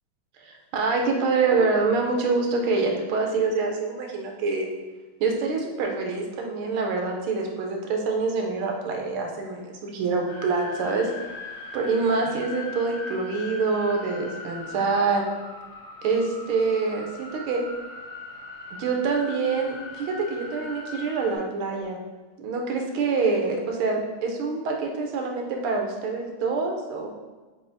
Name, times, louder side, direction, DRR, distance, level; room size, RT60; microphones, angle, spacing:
voice 1, 0.4-4.7 5.2-11.1 11.7-15.2 16.0-17.6 18.7-22.0 22.4-27.1, right 4 dB, 80° right, 1 dB, 1.5 m, -26 dB
sound 1, 10.3-21.4, left 2 dB, 60° left, 0.8 m, -40 dB
7.0 x 2.8 x 2.6 m, 1.2 s
omnidirectional pair, 2.4 m